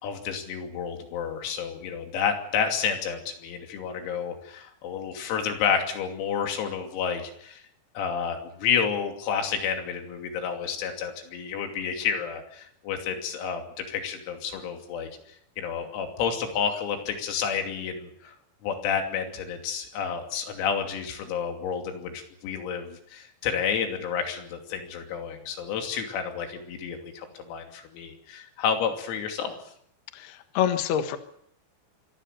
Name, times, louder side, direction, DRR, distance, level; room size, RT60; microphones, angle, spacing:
voice 1, 0.0-7.6 8.0-15.1 15.6-18.4 18.6-29.6, left 7 dB, 85° left, 4 dB, 5.6 m, -30 dB
voice 2, 30.1-31.2, left 9 dB, 65° left, 8 dB, 3.0 m, -26 dB
25.0 x 19.5 x 6.9 m, 0.69 s
omnidirectional pair, 6.0 m